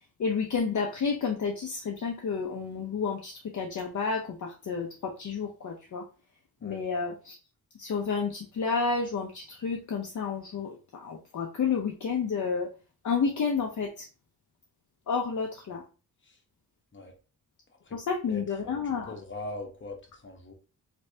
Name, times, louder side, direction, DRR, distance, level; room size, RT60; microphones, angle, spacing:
voice 1, 0.2-6.0 6.6-7.4 7.8-12.7 13.0-14.1 15.1-15.8 17.9-19.2, left 5 dB, 50° left, 1 dB, 0.6 m, -30 dB
voice 2, 18.3-20.5, left 2 dB, 30° left, 2 dB, 1.0 m, -42 dB
3.4 x 3.2 x 2.7 m, 0.34 s
wide cardioid pair, 100°, 38 cm